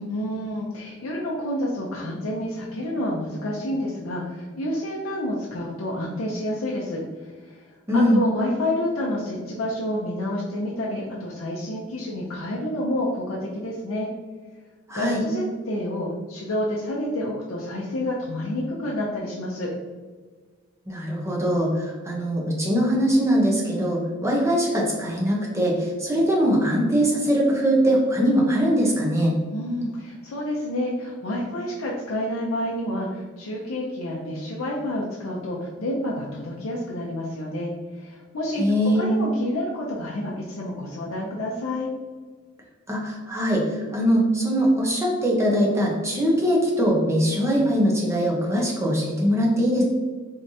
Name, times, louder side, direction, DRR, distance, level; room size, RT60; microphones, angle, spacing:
voice 1, 0.1-7.6 7.9-14.1 14.9-19.7 29.5-38.6 38.9-41.9, left 1 dB, 80° left, -4 dB, 0.5 m, -29 dB
voice 2, 7.9-8.2 14.9-15.2 20.9-29.3 38.6-39.1 42.9-49.8, equal, 15° right, -3 dB, 0.8 m, -22 dB
3.6 x 3.3 x 2.7 m, 1.4 s
head